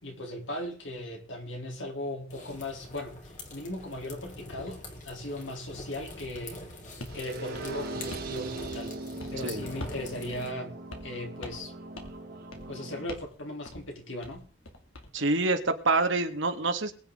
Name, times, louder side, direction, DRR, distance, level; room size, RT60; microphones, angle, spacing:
voice 1, 0.0-6.6 7.1-8.9 9.3-10.7 11.0-11.7 12.7-14.5, left 1 dB, 70° left, 3.7 m, -38 dB
sound 1, 2.3-10.5, left 2 dB, 40° left, 3.6 m, -45 dB
sound 2, 7.0-7.2 7.5-8.3 8.6-8.9 9.2-9.4 9.8-10.1 10.3-10.4 10.9-11.2 11.4-11.7 12.0-12.2 12.5-12.7 13.1-13.4 13.7-13.9 14.2-15.1, left 1 dB, 85° left, 2.8 m, -43 dB
sound 3, 7.1-13.1, right 2 dB, 50° right, 2.0 m, -40 dB
voice 2, 15.1-16.9, right 3 dB, 70° right, 2.0 m, -26 dB
22.0 x 9.6 x 3.9 m
head